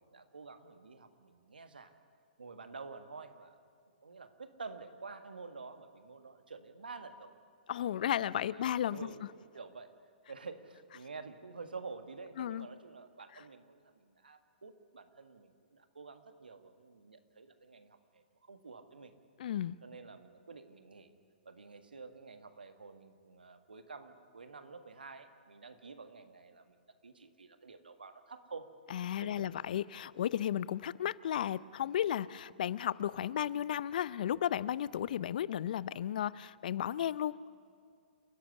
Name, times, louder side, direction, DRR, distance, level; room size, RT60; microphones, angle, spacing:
voice 1, 0.0-1.9 2.4-3.6 4.0-7.3 8.0-9.2 9.5-9.9 10.3-19.1 19.8-21.1 21.5-26.8 27.0-28.7 29.1-29.5, right 4 dB, 85° right, 8 dB, 1.7 m, -49 dB
voice 2, 7.7-9.1 12.4-12.7 19.4-19.8 28.9-37.3, left 10 dB, 60° left, 20 dB, 0.5 m, -34 dB
29.0 x 11.5 x 9.9 m, 2.3 s
hypercardioid pair, 125°, 5 cm